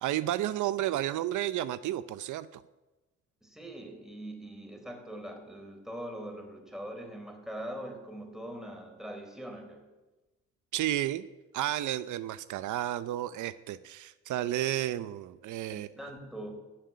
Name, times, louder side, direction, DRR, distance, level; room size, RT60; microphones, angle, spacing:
voice 1, 0.0-2.6 10.7-11.2 11.5-15.9, right 13 dB, 75° right, 15 dB, 0.6 m, -32 dB
voice 2, 3.4-9.9 15.7-16.6, right 1 dB, ahead, 3 dB, 4.0 m, -42 dB
15.5 x 7.7 x 9.6 m, 1.1 s
cardioid pair, 90°, 30 cm